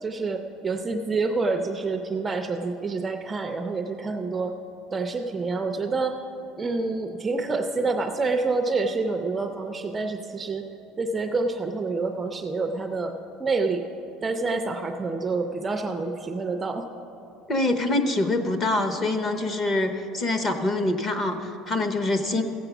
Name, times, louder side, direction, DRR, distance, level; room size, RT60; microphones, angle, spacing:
voice 1, 0.0-4.5 4.9-6.2 6.6-10.7 11.0-13.1 13.4-13.9 14.2-16.9, right 3 dB, 15° right, 5 dB, 0.4 m, -27 dB
voice 2, 17.5-22.4, left 2 dB, 25° left, 7 dB, 0.8 m, -25 dB
15.5 x 7.9 x 5.9 m, 3.0 s
cardioid pair, 170°, 0 cm